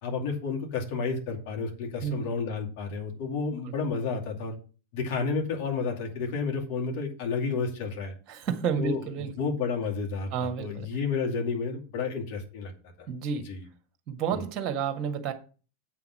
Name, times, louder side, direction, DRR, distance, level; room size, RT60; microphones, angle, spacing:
voice 1, 0.0-4.6 4.9-8.1 8.8-12.7 13.5-13.6 14.3-14.4, left 4 dB, 45° left, 2.5 m, -31 dB
voice 2, 2.0-2.3 8.3-9.3 10.3-10.9 13.1-13.5 14.1-15.3, right 7 dB, 35° right, 1.7 m, -30 dB
8.3 x 5.8 x 5.9 m
figure-of-eight pair, 90°, 0 cm